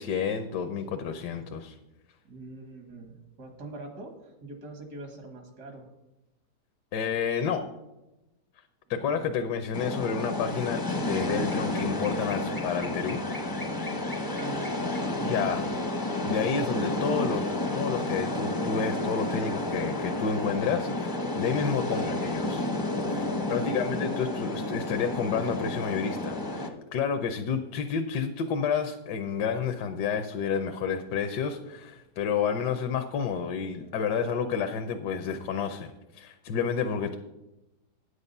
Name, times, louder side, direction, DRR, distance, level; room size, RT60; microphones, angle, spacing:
voice 1, 0.0-1.8 6.9-7.6 8.9-13.2 15.2-15.7 16.2-22.6 23.1-37.2, left 6 dB, 75° left, 7 dB, 1.3 m, -30 dB
voice 2, 2.2-5.9 9.0-9.5 14.3-15.8 21.8-22.1 23.4-24.3 33.8-33.9, right 2 dB, 65° right, 5 dB, 2.3 m, -44 dB
sound 1, 9.7-26.7, left 2 dB, 20° left, 0.6 m, -31 dB
9.5 x 8.4 x 5.4 m, 0.97 s
omnidirectional pair, 1.8 m